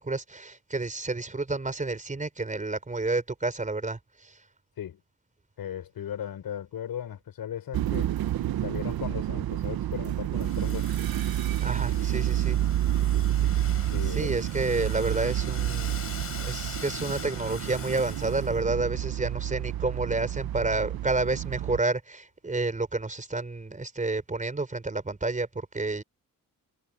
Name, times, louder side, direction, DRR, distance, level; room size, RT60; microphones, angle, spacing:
voice 1, 0.0-4.4 11.6-12.6 14.1-16.0 16.4-26.0, right 3 dB, 20° right, 4.7 m, -30 dB
voice 2, 5.6-8.1 8.6-10.9 13.8-14.4, left 9 dB, 85° left, 5.6 m, -37 dB
sound 1, 7.7-21.8, right 12 dB, 90° right, 0.9 m, -29 dB
Domestic sounds home sounds, 10.4-18.6, left 5 dB, 40° left, 5.6 m, -43 dB
wide cardioid pair, 125°, 35 cm